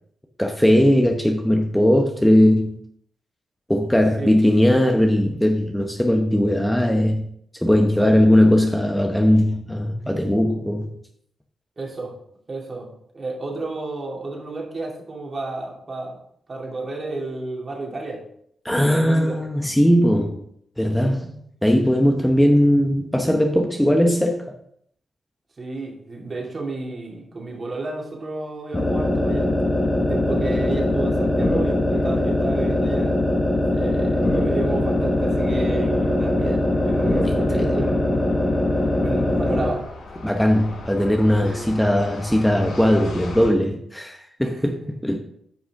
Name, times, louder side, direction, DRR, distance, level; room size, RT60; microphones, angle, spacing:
voice 1, 0.4-2.8 3.7-7.3 7.6-10.9 18.6-20.4 20.8-21.3 21.6-24.6 37.2-37.8 40.2-45.2, equal, 5° left, 2 dB, 0.9 m, -19 dB
voice 2, 11.8-12.1 12.5-16.2 16.5-18.2 18.8-19.4 25.6-29.5 29.9-33.2 33.7-38.3 39.0-39.9 41.4-41.7 44.4-44.9, right 2 dB, 40° right, -1 dB, 2.6 m, -31 dB
sound 1, 28.7-39.8, left 1 dB, 25° left, 1.4 m, -21 dB
sound 2, 34.7-43.5, left 2 dB, 90° left, 1.7 m, -39 dB
9.7 x 5.7 x 3.5 m, 0.69 s
cardioid pair, 75°, 0 cm